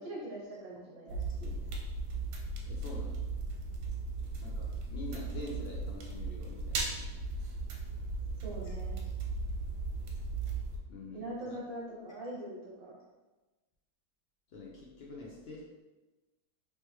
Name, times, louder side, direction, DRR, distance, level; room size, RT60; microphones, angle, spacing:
voice 1, 0.0-1.5 8.4-8.9 11.1-13.0, right 1 dB, 60° right, -5 dB, 1.4 m, -42 dB
sound 1, 1.1-10.8, right 3 dB, 80° right, 1.2 m, -37 dB
voice 2, 2.7-3.2 4.4-7.1 8.6-8.8 10.9-11.6 14.5-15.6, left 2 dB, 80° left, -3 dB, 0.5 m, -46 dB
3.3 x 3.0 x 3.0 m, 1.1 s
omnidirectional pair, 1.7 m